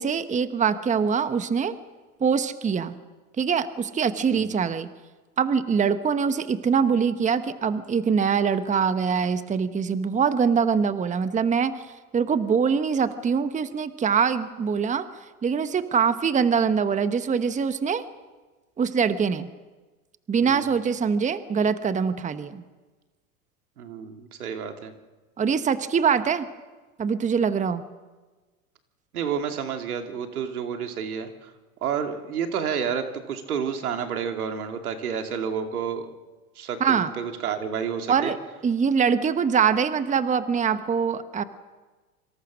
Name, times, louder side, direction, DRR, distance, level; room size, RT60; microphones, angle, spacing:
voice 1, 0.0-1.8 2.2-3.0 3.4-4.9 5.4-15.1 15.4-18.0 18.8-19.5 20.3-22.6 25.4-26.5 27.0-27.8 36.8-37.1 38.1-38.4 38.6-41.4, right 6 dB, 15° right, 12 dB, 1.1 m, -23 dB
voice 2, 23.8-24.9 29.1-31.5 31.8-36.1 36.6-38.3, right 7 dB, 85° right, 5 dB, 2.7 m, -30 dB
26.0 x 25.5 x 6.3 m, 1.3 s
hypercardioid pair, 100°, 43 cm